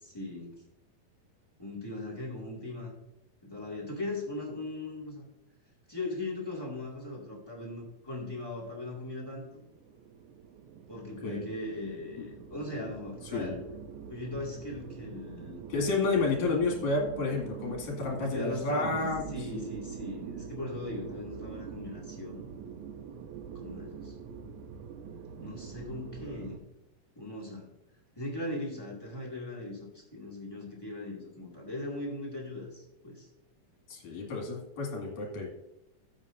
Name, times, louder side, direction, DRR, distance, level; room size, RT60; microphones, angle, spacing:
voice 1, 0.0-0.5 1.6-2.9 3.4-5.2 5.9-9.5 10.9-13.6 14.1-15.6 18.2-22.5 23.5-24.1 25.4-26.6 27.1-27.7 28.1-33.3, left 2 dB, 10° left, -2 dB, 1.5 m, -39 dB
sound 1, 9.5-26.6, right 7 dB, 75° right, 1.9 m, -44 dB
voice 2, 13.3-13.6 15.7-19.7 33.9-35.5, left 3 dB, 60° left, 0 dB, 3.5 m, -30 dB
13.0 x 7.9 x 2.6 m, 0.84 s
omnidirectional pair, 4.0 m